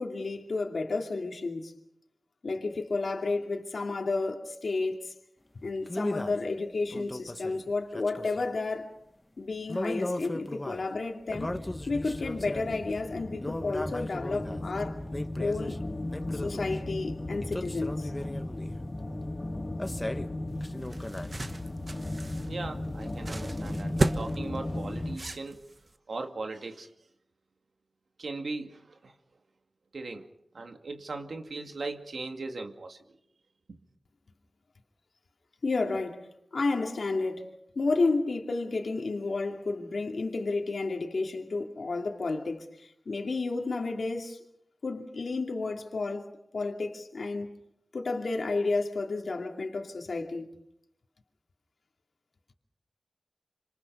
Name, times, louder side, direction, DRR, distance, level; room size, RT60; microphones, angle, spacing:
voice 1, 0.0-1.7 2.4-5.1 5.6-9.0 9.4-11.6 11.9-15.0 15.4-15.8 16.3-18.1 35.6-44.4 44.8-47.6 47.9-50.5, left 3 dB, 75° left, 2.6 m, -31 dB
sound 1, 5.9-6.4 6.9-8.5 9.7-10.9 11.3-12.9 13.4-14.6 15.1-15.8 16.1-16.8 17.4-18.8 19.8-20.3 20.6-21.4, left 1 dB, 20° left, 1.5 m, -37 dB
sound 2, 11.3-25.2, left 1 dB, 40° left, 3.7 m, -36 dB
sound 3, 20.5-25.9, right 2 dB, 45° right, 1.3 m, -35 dB
voice 2, 22.5-25.6 26.1-26.9 28.2-29.2 29.9-30.3 30.5-33.0 33.7-33.8, right 3 dB, 80° right, 2.2 m, -38 dB
27.0 x 26.5 x 5.4 m
wide cardioid pair, 65°, 0 cm